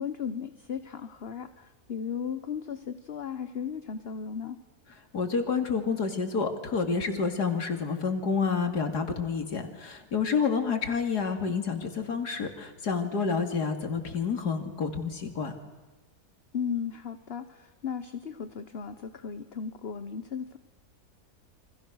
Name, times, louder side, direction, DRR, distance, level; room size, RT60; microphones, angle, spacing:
voice 1, 0.0-4.6 16.5-20.6, left 7 dB, 45° left, 10 dB, 1.2 m, -36 dB
voice 2, 5.1-15.5, left 5 dB, 80° left, 6 dB, 3.1 m, -29 dB
30.0 x 25.0 x 6.4 m, 1.3 s
omnidirectional pair, 1.7 m